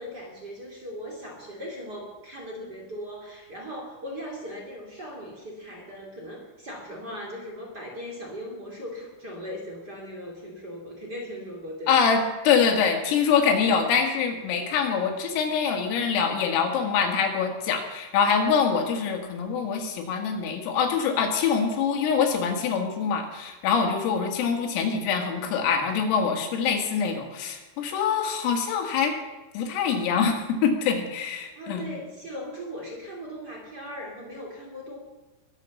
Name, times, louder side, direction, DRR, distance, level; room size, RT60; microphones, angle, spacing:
voice 1, 0.0-12.0 31.5-35.0, equal, 25° right, -2 dB, 2.5 m, -38 dB
voice 2, 11.9-29.1 29.5-31.9, left 6 dB, 85° left, 3 dB, 4.7 m, -24 dB
22.0 x 7.9 x 7.2 m, 1.2 s
omnidirectional pair, 5.8 m